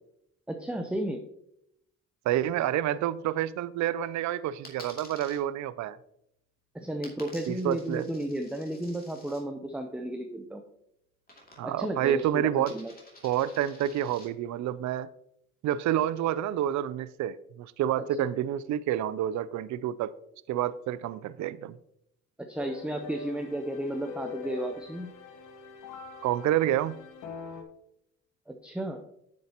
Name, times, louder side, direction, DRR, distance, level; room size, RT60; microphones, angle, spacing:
voice 1, 0.5-1.2 6.7-10.7 11.6-12.9 22.5-25.1 28.5-29.0, right 1 dB, 5° right, 0.7 m, -33 dB
voice 2, 2.3-6.0 7.5-8.1 11.6-12.7 13.2-15.1 15.6-20.1 20.5-21.8 26.2-26.9, right 11 dB, 70° right, 0.5 m, -28 dB
Coin (dropping), 4.6-5.4 7.0-9.4 11.3-11.9 12.2-14.3, left 1 dB, 30° left, 2.5 m, -50 dB
sound 1, 22.6-27.6, left 5 dB, 85° left, 1.2 m, -43 dB
9.2 x 7.3 x 2.9 m
cardioid pair, 90°, 30 cm